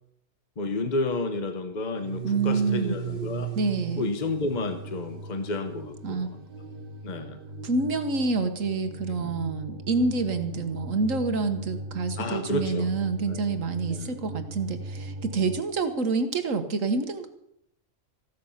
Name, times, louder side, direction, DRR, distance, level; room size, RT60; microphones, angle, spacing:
voice 1, 0.6-3.5 3.9-6.3 7.0-7.4 9.1-9.3 12.2-12.9 13.3-13.4 13.9-14.1, left 2 dB, 35° left, 7 dB, 1.3 m, -31 dB
sound 1, 1.9-15.6, right 4 dB, 45° right, 1.4 m, -38 dB
voice 2, 2.2-3.0 3.5-4.0 6.0-6.3 7.6-17.3, right 4 dB, 90° right, 8 dB, 1.7 m, -27 dB
15.0 x 12.5 x 5.7 m, 0.74 s
omnidirectional pair, 1.3 m